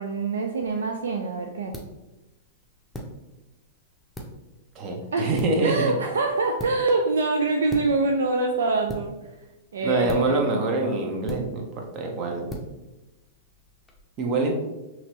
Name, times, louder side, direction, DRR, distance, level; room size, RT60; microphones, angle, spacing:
voice 1, 0.0-1.7 5.1-5.3 5.6-9.1 9.7-10.7, right 3 dB, 65° right, 3 dB, 0.4 m, -25 dB
sound 1, 0.5-14.0, equal, 5° left, 0.7 m, -41 dB
voice 2, 4.7-5.9 9.8-12.6 14.2-14.5, right 2 dB, 35° right, 2 dB, 0.9 m, -25 dB
5.8 x 3.1 x 2.7 m, 1.0 s
figure-of-eight pair, 100°, 0 cm